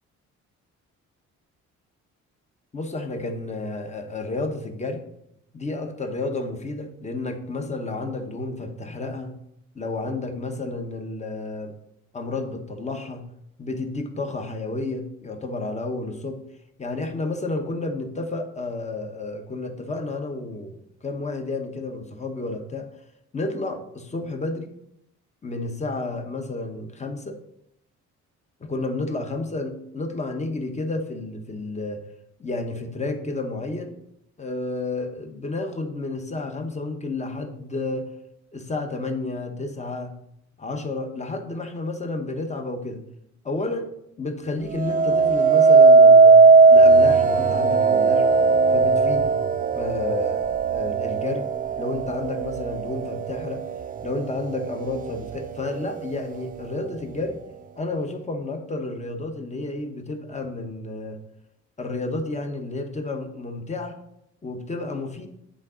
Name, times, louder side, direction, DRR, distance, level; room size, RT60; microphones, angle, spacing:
voice 1, 2.7-5.0 5.5-9.3 9.7-11.7 12.1-13.3 13.6-16.4 16.8-22.9 23.3-24.7 25.4-27.4 28.6-32.0 32.4-33.9 34.4-38.1 38.5-40.1 40.6-43.0 43.4-43.9 44.2-48.3 48.7-49.3 49.7-51.5 51.8-53.6 54.0-57.4 57.8-61.2 61.8-64.0 64.4-65.3, left 2 dB, 25° left, 5 dB, 1.0 m, -31 dB
sound 1, 44.8-53.9 54.4-54.9, right 4 dB, 30° right, 0.3 m, -17 dB
7.5 x 3.8 x 4.9 m, 0.77 s
cardioid pair, 90°, 30 cm